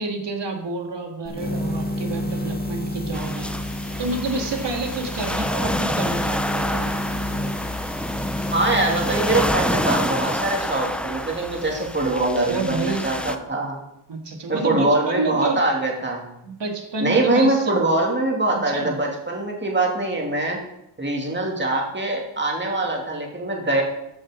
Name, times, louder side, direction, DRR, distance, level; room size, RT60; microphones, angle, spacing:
voice 1, 0.0-3.5 4.0-6.9 12.5-13.0 14.1-15.6 16.4-17.8 18.7-18.9, right 3 dB, 75° right, 3 dB, 2.1 m, -28 dB
sound 1, 1.3-9.5, left 1 dB, 20° left, 1.7 m, -30 dB
sound 2, 3.1-13.4, equal, 5° left, 0.5 m, -28 dB
voice 2, 8.5-13.8 14.5-16.2 17.0-20.6 21.0-23.8, right 2 dB, 25° right, -1 dB, 2.5 m, -23 dB
14.0 x 6.4 x 5.1 m, 0.85 s
wide cardioid pair, 170°, 43 cm